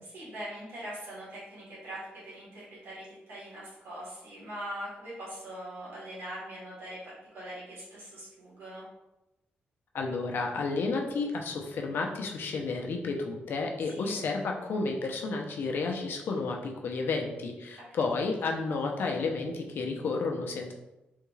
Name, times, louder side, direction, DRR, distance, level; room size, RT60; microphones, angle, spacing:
voice 1, 0.1-8.8 13.9-14.2 18.1-18.2, right 1 dB, 85° right, -8 dB, 1.4 m, -42 dB
voice 2, 9.9-20.7, left 3 dB, 70° left, 2 dB, 0.6 m, -31 dB
3.6 x 2.3 x 3.1 m, 0.96 s
cardioid pair, 115°, 4 cm